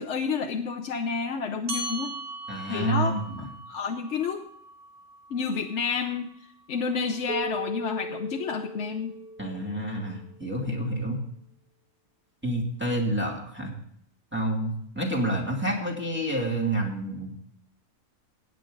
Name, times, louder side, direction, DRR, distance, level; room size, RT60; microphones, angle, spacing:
voice 1, 0.0-2.1 2.7-3.1 3.7-4.4 5.3-6.3 6.7-9.1, left 5 dB, 55° left, 3 dB, 1.0 m, -29 dB
sound 1, 1.7-6.5, right 1 dB, 55° right, 1.8 m, -40 dB
voice 2, 2.5-3.5 9.4-11.2 12.4-13.7 14.3-17.4, right 1 dB, 5° right, -2 dB, 2.4 m, -29 dB
Keyboard (musical), 7.3-10.5, right 1 dB, 30° right, 1.8 m, -38 dB
17.0 x 9.2 x 3.8 m, 0.67 s
omnidirectional pair, 1.6 m